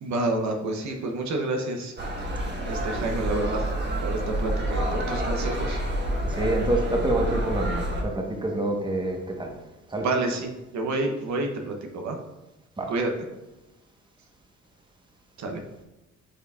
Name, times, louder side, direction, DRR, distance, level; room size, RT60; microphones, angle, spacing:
voice 1, 0.0-1.9 2.7-3.7 4.0-5.8 10.0-12.2 12.9-13.1 15.4-15.6, right 2 dB, 65° right, 3 dB, 0.9 m, -29 dB
sound 1, 2.0-8.0, right 1 dB, 35° right, 1.4 m, -28 dB
voice 2, 6.2-9.5 9.9-10.1 12.8-12.9, right 2 dB, 15° right, 1 dB, 1.1 m, -27 dB
8.8 x 4.6 x 2.4 m, 1.0 s
cardioid pair, 90°, 30 cm